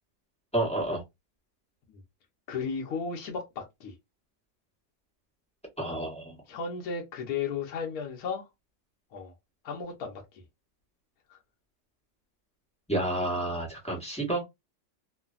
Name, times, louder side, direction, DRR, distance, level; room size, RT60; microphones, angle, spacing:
voice 1, 0.5-1.0 5.8-6.4 12.9-14.4, right 1 dB, 5° left, 0.7 m, -30 dB
voice 2, 2.5-4.0 6.5-8.5 9.1-9.3 9.6-10.4 11.3-11.4, left 5 dB, 65° left, 1.1 m, -34 dB
3.1 x 2.2 x 2.3 m
omnidirectional pair, 2.0 m